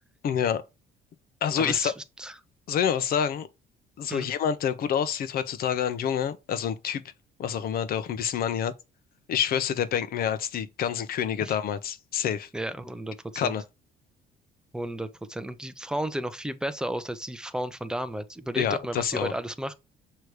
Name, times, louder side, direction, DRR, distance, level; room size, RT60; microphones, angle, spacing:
voice 1, 0.2-0.6 1.4-1.9 2.7-3.5 4.0-7.0 7.4-8.7 9.3-12.5 13.4-13.6 18.5-19.3, left 8 dB, 60° left, 0.9 m, -27 dB
voice 2, 1.6-2.3 4.1-4.3 11.4-11.5 12.5-13.6 14.7-19.7, right 1 dB, 5° right, 0.7 m, -33 dB
6.6 x 3.1 x 4.7 m
cardioid pair, 110°, 17 cm